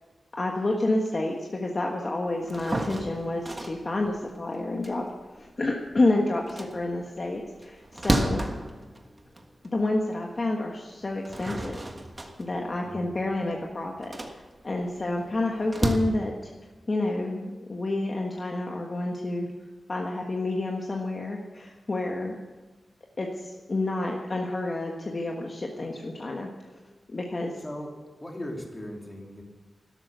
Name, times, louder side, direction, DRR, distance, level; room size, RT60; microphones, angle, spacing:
voice 1, 0.3-5.1 5.3-8.5 9.6-11.8 12.4-16.5 16.9-19.5 19.9-22.4 23.2-26.8 27.1-27.6, left 2 dB, 35° left, 0 dB, 1.4 m, -29 dB
sound 1, 2.4-5.9 6.3-9.8 10.3-10.4 11.0-16.0, right 1 dB, 25° right, 1.5 m, -32 dB
voice 2, 12.8-13.1 27.6-29.4, left 1 dB, 15° left, 0 dB, 2.9 m, -38 dB
13.0 x 12.5 x 6.9 m, 1.3 s
wide cardioid pair, 150°, 0 cm